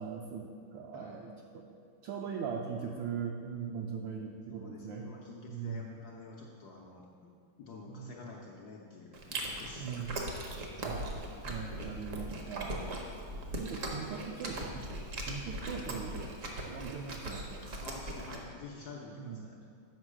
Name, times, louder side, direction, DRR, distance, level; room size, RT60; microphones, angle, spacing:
voice 1, 0.0-1.8 2.0-5.0 5.5-5.9 7.9-8.2 9.8-10.1 10.9-12.9 13.6-14.8 15.3-16.2 16.5-17.4 19.1-19.5, right 6 dB, 75° right, 0 dB, 1.2 m, -40 dB
voice 2, 0.9-1.3 4.5-9.9 17.8-19.6, left 3 dB, 75° left, -2 dB, 0.9 m, -49 dB
Chewing mastication, 9.1-18.4, right 1 dB, 60° right, 0.8 m, -39 dB
7.4 x 5.3 x 4.9 m, 2.3 s
omnidirectional pair, 2.4 m